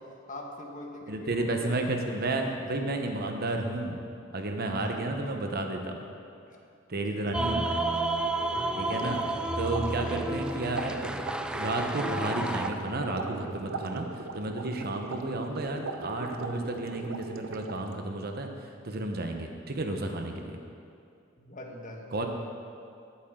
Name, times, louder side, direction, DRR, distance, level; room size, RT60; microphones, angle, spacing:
voice 1, 0.0-1.9 2.3-2.4 4.8-5.1 6.5-6.6 7.1-7.6 9.0-9.3 9.7-9.9 21.4-22.3, left 1 dB, 40° left, 1 dB, 1.4 m, -44 dB
voice 2, 1.1-4.0 4.3-6.0 6.9-7.8 8.7-9.2 9.6-11.2 11.6-20.6 22.1-22.3, right 2 dB, 50° right, 4 dB, 1.0 m, -32 dB
sound 1, 7.3-12.7, right 2 dB, 5° right, 0.4 m, -31 dB
sound 2, 8.5-17.9, right 4 dB, 80° right, 0.7 m, -40 dB
18.0 x 8.7 x 3.8 m, 2.4 s
head